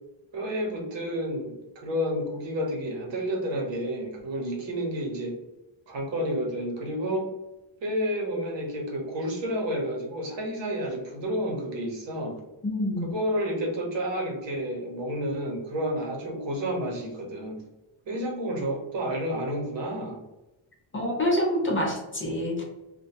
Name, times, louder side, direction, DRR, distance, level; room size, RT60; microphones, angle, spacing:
voice 1, 0.3-5.4 5.9-7.3 7.8-12.4 13.0-17.6 18.1-20.2, equal, 65° right, 0 dB, 0.9 m, -30 dB
voice 2, 12.6-13.1 20.9-22.6, equal, 25° left, -2 dB, 0.5 m, -26 dB
2.2 x 2.1 x 2.8 m, 0.98 s
cardioid pair, 105°, 49 cm